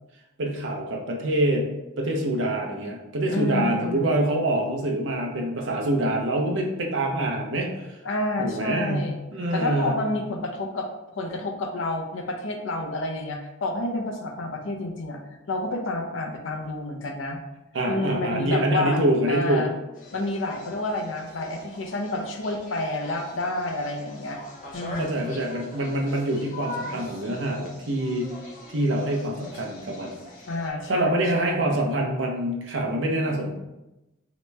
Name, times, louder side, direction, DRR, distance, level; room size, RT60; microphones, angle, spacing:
voice 1, 0.4-1.7 2.0-8.0 8.4-10.0 17.7-19.6 25.0-28.3 28.7-30.2 30.9-33.5, right 1 dB, 65° right, 1 dB, 0.6 m, -25 dB
voice 2, 3.3-4.1 8.0-9.2 9.5-10.9 11.1-15.2 15.5-17.4 17.9-19.7 20.1-24.4 24.7-25.3 30.5-31.8, left 2 dB, 70° left, 4 dB, 0.5 m, -29 dB
sound 1, 19.9-30.7, left 2 dB, 45° left, 0.8 m, -42 dB
3.1 x 2.9 x 3.3 m, 0.99 s
head